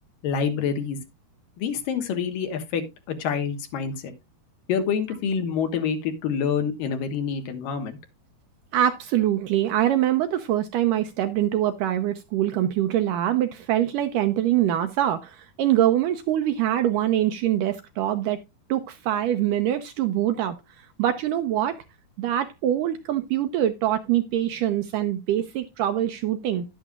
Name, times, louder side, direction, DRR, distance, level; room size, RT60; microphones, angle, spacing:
voice 1, 0.2-1.0 1.6-4.1 4.7-8.0, left 6 dB, 70° left, 2.9 m, -27 dB
voice 2, 8.7-18.4 18.7-20.6 21.0-21.8 22.2-26.6, right 11 dB, 80° right, 2.0 m, -24 dB
11.0 x 11.0 x 2.3 m
omnidirectional pair, 4.4 m